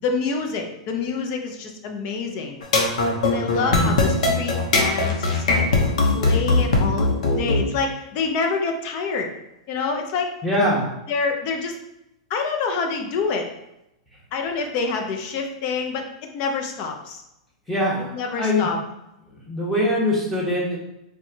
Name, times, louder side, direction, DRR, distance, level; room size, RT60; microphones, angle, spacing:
voice 1, 0.0-2.6 3.2-5.6 6.1-7.1 7.4-9.3 9.7-10.3 11.1-11.8 12.3-13.5 14.3-17.2 18.1-18.8, left 4 dB, 45° left, 3 dB, 0.6 m, -27 dB
sound 1, 2.6-7.6, left 3 dB, 80° left, 0.7 m, -19 dB
voice 2, 10.4-10.8 17.7-18.7 19.5-20.8, left 1 dB, ahead, -6 dB, 1.1 m, -22 dB
4.4 x 2.3 x 2.7 m, 0.88 s
hypercardioid pair, 140°, 4 cm